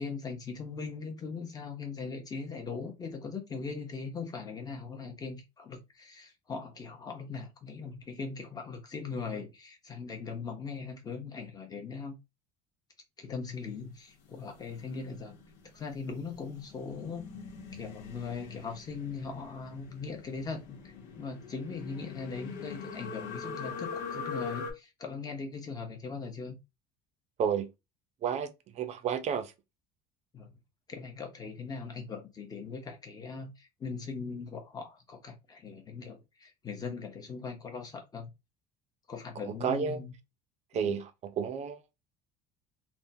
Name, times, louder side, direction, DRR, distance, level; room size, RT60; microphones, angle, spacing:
voice 1, 0.0-12.2 13.2-15.3 15.7-17.2 17.7-26.6 30.3-30.5 30.9-38.3 39.1-40.1 40.8-41.0, left 4 dB, 20° left, 0.8 m, -40 dB
sound 1, 14.2-24.7, left 5 dB, 85° left, 1.0 m, -43 dB
voice 2, 28.8-29.5 39.6-40.0 40.7-41.8, right 7 dB, 35° right, 0.5 m, -31 dB
3.5 x 2.2 x 2.7 m
cardioid pair, 155°, 19 cm